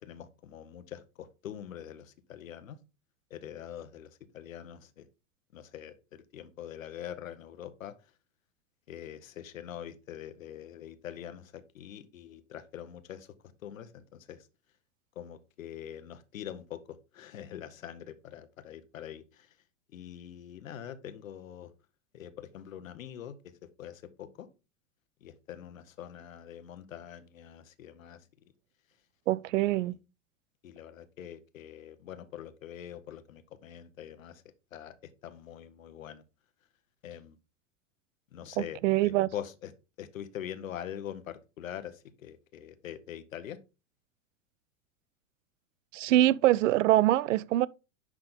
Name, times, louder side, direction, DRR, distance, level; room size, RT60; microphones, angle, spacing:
voice 1, 0.0-2.8 3.3-5.1 5.5-8.1 8.9-13.3 13.6-14.5 15.1-19.6 19.9-21.7 22.1-24.5 25.2-28.3 29.7-29.9 30.6-34.4 34.7-36.2 37.0-37.4 38.3-39.7 40.0-43.6, left 10 dB, 80° left, 1.1 m, -44 dB
voice 2, 29.3-30.0 38.6-39.3 45.9-47.7, right 15 dB, 70° right, 0.5 m, -24 dB
10.5 x 3.7 x 3.8 m
hypercardioid pair, 100°, 40 cm